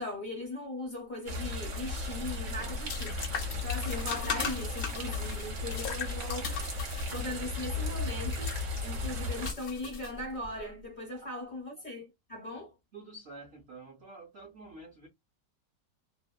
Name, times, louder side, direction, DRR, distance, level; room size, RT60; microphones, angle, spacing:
voice 1, 0.0-3.2 3.6-6.6 7.1-8.5 8.8-12.7, left 2 dB, 40° left, 0.7 m, -39 dB
sound 1, 1.3-9.5, left 2 dB, 55° right, 1.0 m, -35 dB
sound 2, 1.8-10.6, left 5 dB, 80° left, 0.6 m, -39 dB
voice 2, 12.9-15.1, right 2 dB, 90° right, 0.5 m, -48 dB
2.8 x 2.1 x 2.2 m
omnidirectional pair, 1.9 m